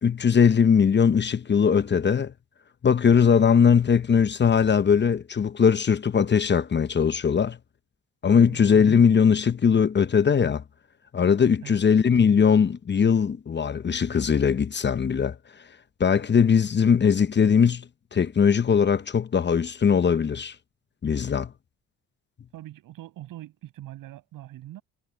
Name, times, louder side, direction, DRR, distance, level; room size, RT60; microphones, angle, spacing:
voice 1, 0.0-2.3 2.8-7.6 8.2-10.6 11.1-15.4 16.0-17.8 18.1-20.5 21.0-21.5, left 6 dB, 35° left, 0.9 m, -20 dB
voice 2, 8.3-8.7 11.6-11.8 22.5-24.8, right 14 dB, 75° right, 6.8 m, -42 dB
supercardioid pair, 70°, 33 cm